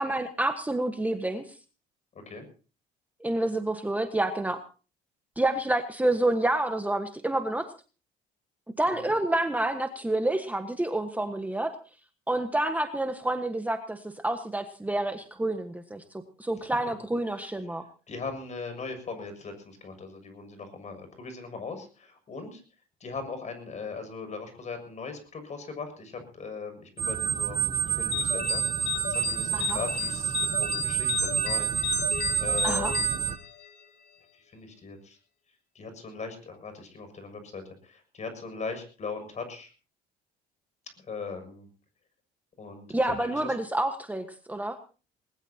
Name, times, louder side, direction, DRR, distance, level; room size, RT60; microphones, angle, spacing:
voice 1, 0.0-1.6 3.2-4.6 5.4-7.7 8.8-11.7 12.3-16.0 16.4-17.8 29.5-29.8 32.6-32.9 42.9-44.8, right 1 dB, 10° right, 7 dB, 1.4 m, -28 dB
voice 2, 2.1-2.4 8.9-9.1 18.1-22.6 23.0-32.1 32.4-33.0 34.3-35.2 35.7-39.7 41.0-41.7 42.6-43.6, left 4 dB, 40° left, 8 dB, 6.8 m, -39 dB
sound 1, 27.0-33.4, right 9 dB, 30° right, 1.1 m, -28 dB
sound 2, 28.1-33.9, left 11 dB, 65° left, 2.8 m, -34 dB
20.5 x 20.5 x 2.9 m, 0.36 s
cardioid pair, 90°, 18 cm